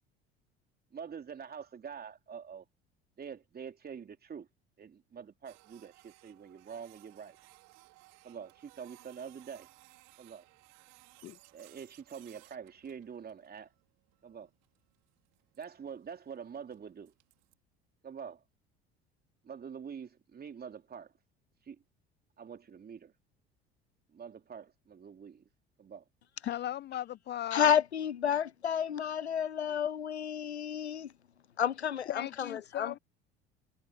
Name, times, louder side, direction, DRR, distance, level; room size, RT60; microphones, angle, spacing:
voice 1, 0.9-2.6 3.2-4.5 4.8-7.4 8.2-9.7 10.2-10.5 11.5-13.7 14.2-14.5 15.6-17.1 18.0-18.4 19.4-21.1 21.6-21.8 22.4-23.1 24.1-25.5 25.8-26.0, right 7 dB, 30° right, 3.1 m, -46 dB
Printer, 5.4-17.5, right 25 dB, 55° right, 3.8 m, -61 dB
voice 2, 26.5-27.8 32.1-33.0, left 12 dB, 35° left, 0.6 m, -37 dB
voice 3, 27.5-31.1 31.6-33.0, left 9 dB, 80° left, 0.6 m, -31 dB
figure-of-eight pair, 60°, 32 cm